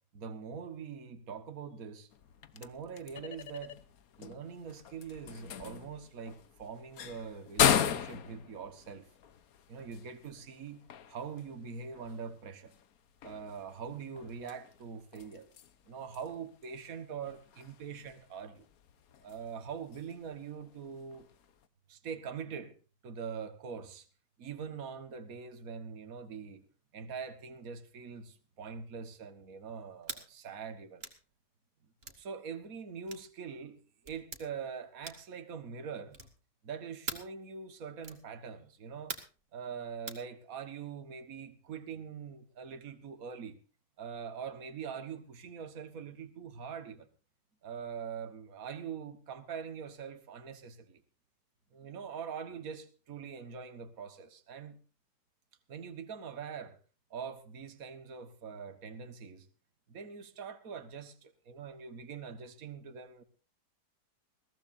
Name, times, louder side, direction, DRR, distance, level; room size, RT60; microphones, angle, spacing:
voice 1, 0.1-2.1 2.5-3.8 4.2-9.1 9.7-10.8 11.1-12.7 13.2-15.5 15.9-18.7 19.2-21.3 21.9-22.7 23.0-24.1 24.4-26.6 26.9-31.0 32.2-36.2 36.6-39.2 39.5-43.6 44.0-47.1 47.6-51.0 51.7-54.8 55.7-56.8 57.1-59.5 59.9-63.2, right 6 dB, 50° right, 2.0 m, -43 dB
sound 1, 2.1-21.7, left 9 dB, 55° left, 1.3 m, -38 dB
sound 2, 30.0-30.3 31.0-31.2 32.0-32.2 33.1-33.3 34.0-34.4 35.0-35.4 36.1-36.4 37.1-37.3 38.0-38.3 39.1-39.4 40.1-40.2, right 3 dB, 35° right, 2.4 m, -42 dB
21.5 x 16.0 x 2.7 m
omnidirectional pair, 2.0 m